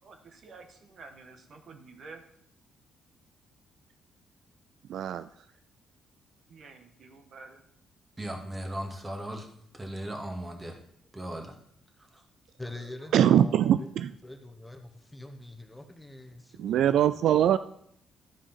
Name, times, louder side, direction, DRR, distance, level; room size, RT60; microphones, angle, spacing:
voice 1, 0.0-2.2 5.5-5.6 6.5-7.6 13.0-13.1, right 4 dB, 55° right, 6 dB, 1.4 m, -50 dB
voice 2, 4.9-5.3 13.1-14.1 16.6-17.6, right 10 dB, 75° right, 13 dB, 0.3 m, -22 dB
voice 3, 8.2-9.5 9.7-10.8 11.1-11.6 12.1-12.2, right 1 dB, 20° right, 3 dB, 1.9 m, -37 dB
voice 4, 12.6-13.9 14.2-17.2, left 2 dB, 10° left, 6 dB, 1.1 m, -44 dB
12.0 x 5.0 x 5.7 m, 0.69 s
cardioid pair, 90°, 0 cm